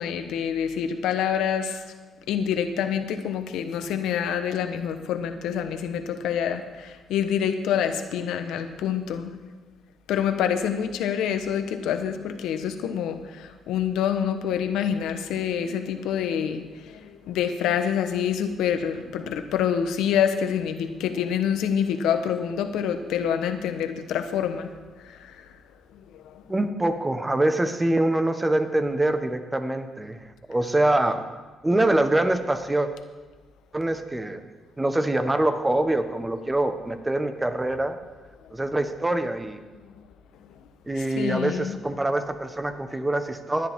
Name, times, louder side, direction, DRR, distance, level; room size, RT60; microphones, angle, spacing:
voice 1, 0.0-1.8 2.3-9.3 10.1-24.7 25.2-25.3 41.0-41.8, left 8 dB, 85° left, 8 dB, 1.1 m, -26 dB
voice 2, 26.5-31.2 31.6-32.9 33.7-34.4 34.8-38.0 38.5-39.6 40.9-43.7, right 1 dB, 15° right, 8 dB, 1.2 m, -24 dB
17.5 x 11.0 x 3.7 m, 1.4 s
cardioid pair, 90°, 0 cm